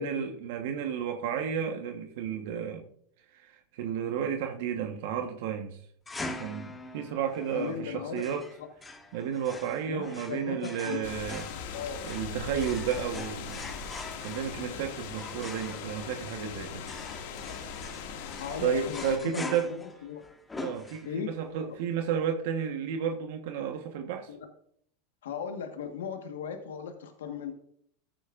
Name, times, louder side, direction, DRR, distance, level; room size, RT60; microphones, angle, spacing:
voice 1, 0.0-2.8 3.3-5.8 6.4-8.5 9.1-11.5 12.0-13.7 14.2-16.9 18.1-18.3 18.6-19.7 20.6-24.3, right 8 dB, 70° right, 5 dB, 1.2 m, -32 dB
sound 1, 6.1-21.4, left 2 dB, 15° left, 1.3 m, -44 dB
voice 2, 7.5-8.2 9.9-11.0 11.7-12.0 17.5-17.7 18.4-20.2 21.0-21.3 24.3-24.5 25.2-27.5, left 7 dB, 90° left, 5 dB, 1.4 m, -37 dB
sound 2, 11.0-19.2, left 6 dB, 70° left, 2.0 m, -40 dB
14.5 x 8.9 x 2.5 m, 0.66 s
supercardioid pair, 115°, 0 cm